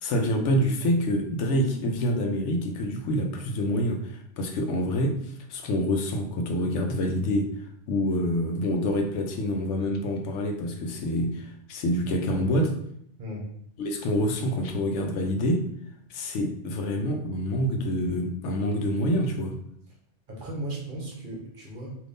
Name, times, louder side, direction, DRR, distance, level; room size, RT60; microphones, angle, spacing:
voice 1, 0.0-7.5 7.9-12.7 13.8-15.6 16.1-19.5, equal, 90° left, 4 dB, 0.9 m, -26 dB
voice 2, 13.2-13.5 20.3-22.0, right 1 dB, 50° right, -3 dB, 0.9 m, -36 dB
3.4 x 2.7 x 2.5 m, 0.70 s
omnidirectional pair, 1.2 m